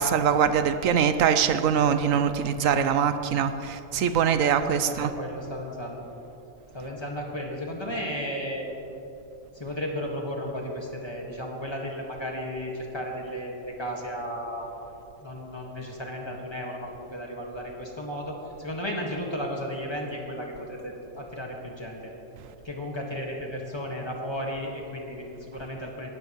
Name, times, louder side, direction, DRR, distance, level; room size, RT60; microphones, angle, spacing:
voice 1, 0.0-5.1, right 7 dB, 80° right, 10 dB, 1.0 m, -23 dB
voice 2, 4.7-6.0 6.7-8.7 9.5-14.7 15.2-22.1 22.6-26.1, equal, 20° left, -1 dB, 1.6 m, -34 dB
18.0 x 13.5 x 3.1 m, 2.9 s
omnidirectional pair, 1.4 m